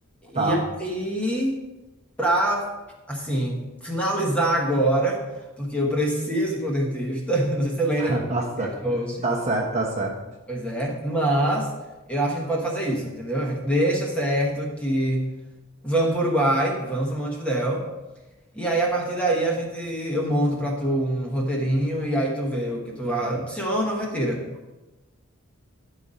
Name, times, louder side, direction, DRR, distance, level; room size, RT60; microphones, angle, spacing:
voice 1, 0.2-1.6 2.2-2.7 3.1-5.2 5.6-8.2 8.8-9.2 10.5-11.7 12.1-15.3 15.8-17.8 18.5-24.4, right 1 dB, 5° left, -2 dB, 1.2 m, -24 dB
voice 2, 8.0-8.8 9.2-10.1, right 2 dB, 30° right, -1 dB, 1.0 m, -25 dB
11.0 x 4.1 x 5.0 m, 1.1 s
head